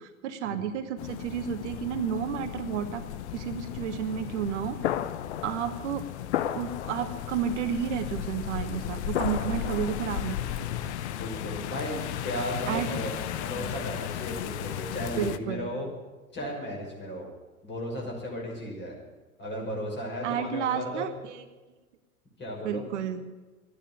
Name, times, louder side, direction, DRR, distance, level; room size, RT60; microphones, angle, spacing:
voice 1, 0.0-3.0 3.3-4.8 5.4-6.1 6.5-10.7 12.7-12.9 13.6-13.7 15.2-15.7 20.2-21.4 22.6-23.2, right 8 dB, 55° right, 9 dB, 1.1 m, -31 dB
sound 1, 1.0-15.4, left 11 dB, 55° left, 0.9 m, -34 dB
voice 2, 11.1-15.9 16.3-17.3 17.6-19.0 19.4-21.1 22.4-22.9, equal, 25° left, -1 dB, 6.0 m, -35 dB
13.0 x 10.0 x 9.8 m, 1.2 s
figure-of-eight pair, 80°, 41 cm